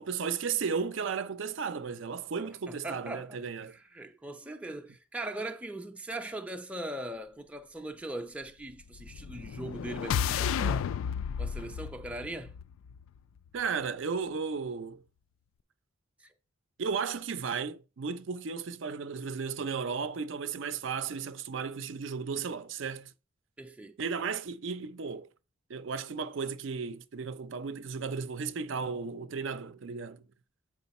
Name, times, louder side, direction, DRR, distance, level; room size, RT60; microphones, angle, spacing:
voice 1, 0.0-3.8 13.5-15.0 16.8-23.1 24.0-25.3 25.7-30.2, right 5 dB, 65° right, 0.5 m, -34 dB
voice 2, 2.4-3.4 3.7-10.9 11.4-12.5 16.2-16.3 23.6-24.0, right 1 dB, 5° right, 0.5 m, -40 dB
sound 1, 8.9-13.2, left 7 dB, 75° left, 0.3 m, -32 dB
7.8 x 4.9 x 4.1 m
head